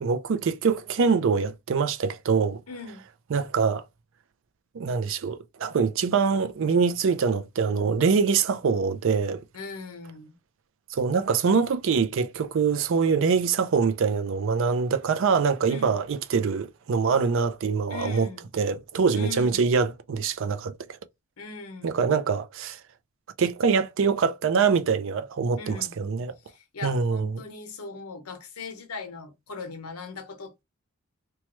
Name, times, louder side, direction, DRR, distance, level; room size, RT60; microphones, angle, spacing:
voice 1, 0.0-2.6 3.3-3.8 4.7-9.4 10.9-18.3 18.5-20.7 21.8-22.8 23.4-26.3 26.8-27.4, right 5 dB, 60° right, 0.4 m, -24 dB
voice 2, 2.7-3.0 9.5-10.4 15.7-16.0 17.9-18.5 19.1-19.7 21.4-22.0 25.6-26.0 26.4-30.6, left 4 dB, 80° left, 0.8 m, -39 dB
3.0 x 2.3 x 3.0 m
head